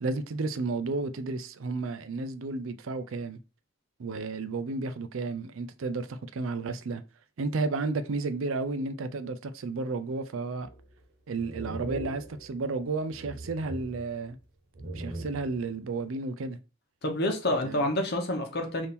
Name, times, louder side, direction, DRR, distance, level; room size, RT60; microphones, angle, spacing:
voice 1, 0.0-3.4 4.0-7.0 7.4-10.7 11.3-14.4 14.9-16.6 17.6-17.9, right 3 dB, 70° right, 0.5 m, -32 dB
sound 1, 10.6-11.0 11.4-12.8 13.1-14.4 14.7-15.7, right 2 dB, 50° right, 0.8 m, -40 dB
voice 2, 17.0-18.9, left 1 dB, 50° left, 1.1 m, -28 dB
3.5 x 2.7 x 4.2 m
head